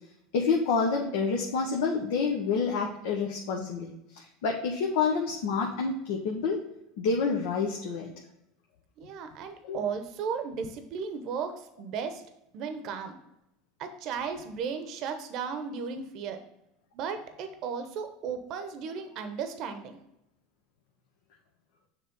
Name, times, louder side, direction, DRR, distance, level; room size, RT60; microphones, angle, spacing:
voice 1, 0.3-6.6 7.0-8.1 9.6-9.8, left 5 dB, 75° left, 0 dB, 0.9 m, -28 dB
voice 2, 9.0-12.2 12.5-13.2 13.8-16.4 16.9-20.0, right 6 dB, 55° right, 7 dB, 0.8 m, -35 dB
7.0 x 3.1 x 5.3 m, 0.83 s
supercardioid pair, 105°, 0 cm